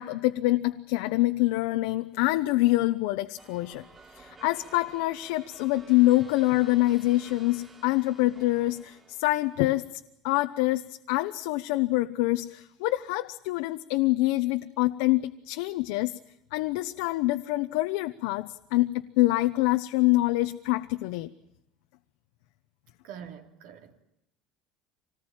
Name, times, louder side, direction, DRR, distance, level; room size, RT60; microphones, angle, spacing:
voice 1, 0.0-3.9 4.1-9.9 10.2-16.2 16.5-21.3, left 18 dB, 85° left, 0.9 m, -25 dB
sound 1, 3.4-9.6, right 3 dB, 20° right, 3.7 m, -53 dB
voice 2, 23.0-24.0, right 8 dB, 70° right, 3.0 m, -44 dB
26.5 x 19.5 x 9.0 m
cardioid pair, 170°, 0 cm